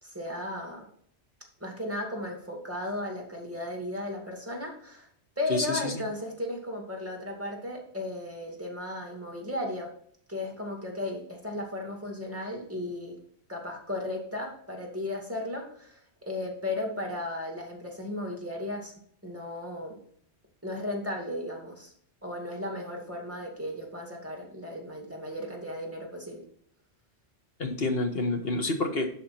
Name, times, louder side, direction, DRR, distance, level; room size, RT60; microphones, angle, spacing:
voice 1, 0.0-0.9 1.6-5.1 5.4-9.9 10.3-13.2 13.5-18.9 19.2-20.0 20.6-21.9 22.2-26.4, left 1 dB, 10° right, 1 dB, 2.4 m, -35 dB
voice 2, 5.5-6.0 27.6-29.1, left 2 dB, 60° left, 5 dB, 1.5 m, -28 dB
11.5 x 5.1 x 4.3 m, 0.63 s
omnidirectional pair, 1.2 m